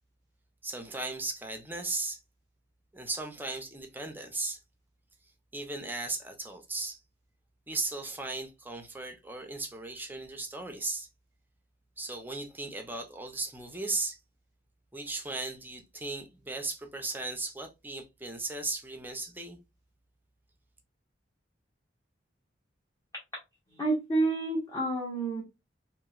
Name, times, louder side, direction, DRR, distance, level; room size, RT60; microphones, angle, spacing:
voice 1, 0.6-2.2 2.9-4.6 5.5-7.0 7.7-11.1 12.0-14.2 14.9-19.6, right 2 dB, 10° right, 0.5 m, -36 dB
voice 2, 23.7-25.4, right 2 dB, 20° left, 0.8 m, -29 dB
3.0 x 2.6 x 2.3 m
head